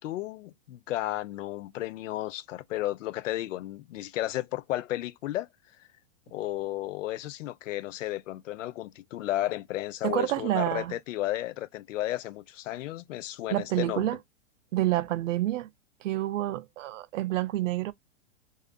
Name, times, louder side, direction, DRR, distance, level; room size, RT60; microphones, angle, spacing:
voice 1, 0.0-5.5 5.8-5.9 6.3-14.1, left 15 dB, 85° left, 0.5 m, -33 dB
voice 2, 10.0-10.9 13.5-14.2 14.7-15.7 16.0-17.9, right 15 dB, 85° right, 0.5 m, -28 dB
2.4 x 2.4 x 2.4 m
supercardioid pair, 175°, 37 cm